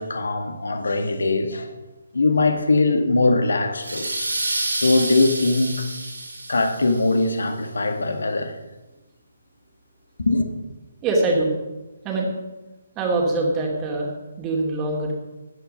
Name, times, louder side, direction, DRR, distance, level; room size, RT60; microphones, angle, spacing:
voice 1, 0.0-1.7 2.1-4.1 4.8-5.9 6.5-8.6 10.2-10.5, left 2 dB, 65° left, 1.7 m, -21 dB
sound 1, 3.8-7.2, right 2 dB, 80° right, 4.5 m, -29 dB
voice 2, 11.0-11.5 12.0-12.3 13.0-14.1 14.4-15.1, right 2 dB, 20° right, 2.5 m, -23 dB
13.5 x 10.0 x 5.4 m
figure-of-eight pair, 140°, 0 cm